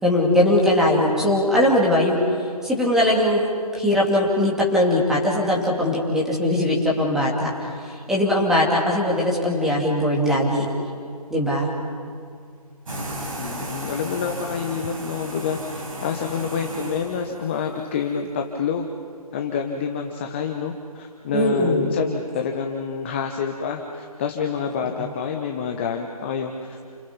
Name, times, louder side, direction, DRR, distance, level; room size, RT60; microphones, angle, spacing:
voice 1, 0.0-2.2 2.6-3.4 3.7-7.5 7.9-10.6 11.3-11.7 21.3-22.0, left 1 dB, ahead, -4 dB, 2.9 m, -20 dB
sound 1, 12.9-17.7, right 1 dB, 60° right, 7.7 m, -34 dB
voice 2, 13.4-18.9 19.3-27.0, left 6 dB, 20° left, 3 dB, 1.0 m, -28 dB
29.5 x 26.5 x 5.5 m, 2.2 s
figure-of-eight pair, 155°, 20 cm